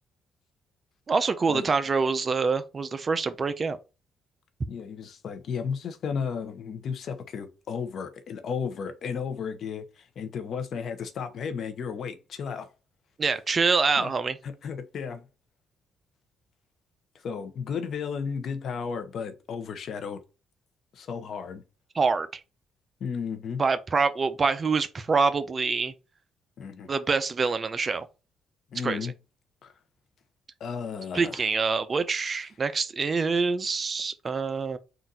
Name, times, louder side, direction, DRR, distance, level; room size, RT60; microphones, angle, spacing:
voice 1, 1.1-3.8 13.2-14.4 21.9-22.4 23.6-25.9 26.9-28.1 28.8-29.1 31.1-34.8, right 4 dB, 35° right, 0.5 m, -25 dB
voice 2, 4.7-12.7 14.0-14.1 14.4-15.2 17.2-20.2 20.9-21.6 23.0-23.6 26.6-26.9 28.7-29.1 29.6-29.7 30.6-31.5, left 6 dB, 65° left, 0.7 m, -34 dB
3.9 x 2.4 x 4.1 m
cardioid pair, 90°, 0 cm